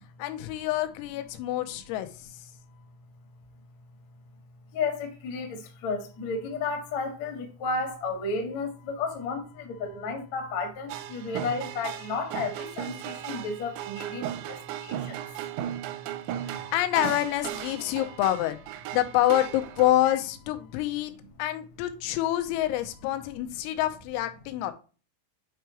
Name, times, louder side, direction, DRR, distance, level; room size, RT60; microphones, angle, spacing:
voice 1, 0.2-2.5 16.3-18.6 18.9-21.1 21.4-24.7, left 14 dB, 90° left, 3.4 m, -27 dB
voice 2, 4.7-15.2, left 4 dB, 65° left, 1.7 m, -33 dB
sound 1, 10.9-19.9, right 11 dB, 85° right, 2.5 m, -36 dB
8.7 x 4.7 x 3.0 m
omnidirectional pair, 5.9 m